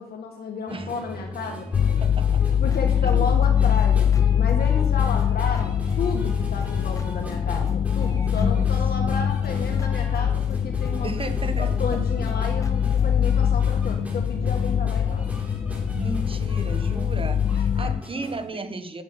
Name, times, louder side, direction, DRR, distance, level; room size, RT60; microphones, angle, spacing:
voice 1, 0.0-1.7 2.6-11.1 11.6-15.3 17.5-18.0 18.5-18.6, left 4 dB, 80° left, 1 dB, 1.7 m, -32 dB
sound 1, 0.7-18.4, equal, 10° right, 4.1 m, -38 dB
sound 2, 1.7-18.0, left 8 dB, 45° left, 0.4 m, -23 dB
voice 2, 2.0-2.4 3.0-3.2 8.3-8.7 11.0-11.8 15.9-19.0, right 3 dB, 35° right, 9 dB, 1.4 m, -34 dB
sound 3, 2.6-4.9 5.2-7.7 8.0-13.1, left 1 dB, 20° left, 1.5 m, -41 dB
9.4 x 7.4 x 9.0 m, 0.74 s
cardioid pair, 85°, 16 cm